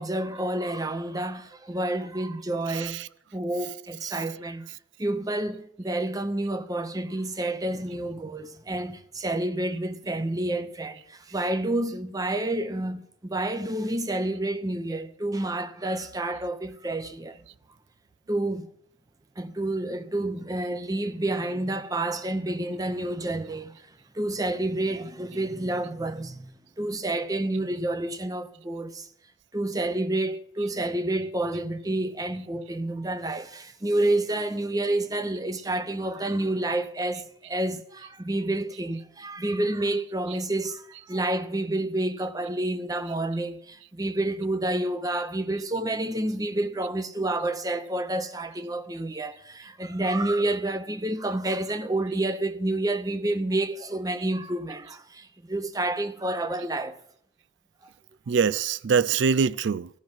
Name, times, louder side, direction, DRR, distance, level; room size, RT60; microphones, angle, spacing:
voice 1, 0.0-3.0 3.3-4.7 5.0-17.4 18.3-18.7 19.4-23.7 24.1-29.1 29.5-57.0, right 1 dB, 20° right, 0.8 m, -29 dB
voice 2, 2.7-3.1 58.3-59.9, right 6 dB, 70° right, 0.4 m, -24 dB
14.0 x 6.1 x 8.7 m
head